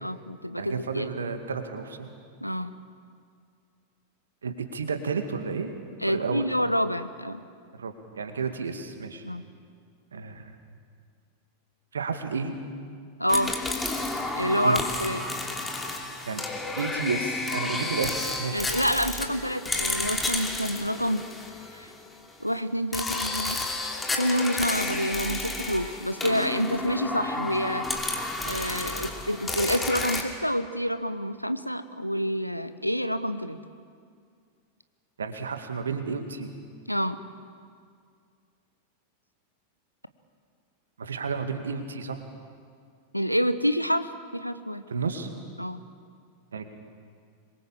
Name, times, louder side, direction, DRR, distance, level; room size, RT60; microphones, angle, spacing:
voice 1, 0.0-1.1 2.4-2.8 6.0-7.4 9.2-9.4 13.2-13.5 14.4-15.2 17.6-17.9 18.5-21.2 21.7-21.9 22.4-23.6 24.1-27.9 28.5-33.6 36.9-37.2 43.1-44.8 45.6-45.8, equal, 90° left, 12 dB, 1.0 m, -28 dB
voice 2, 0.6-2.1 4.4-5.7 6.0-6.4 7.8-9.2 10.1-10.5 11.9-12.5 14.6-14.8 16.2-16.4 16.8-18.6 35.2-36.5 41.0-42.2 44.9-45.3 46.5-46.7, right 5 dB, 70° right, 6 dB, 2.3 m, -31 dB
sound 1, 13.3-22.1 22.9-30.2, left 2 dB, 10° left, 2.8 m, -31 dB
25.5 x 22.5 x 7.5 m, 2.2 s
figure-of-eight pair, 90°, 0 cm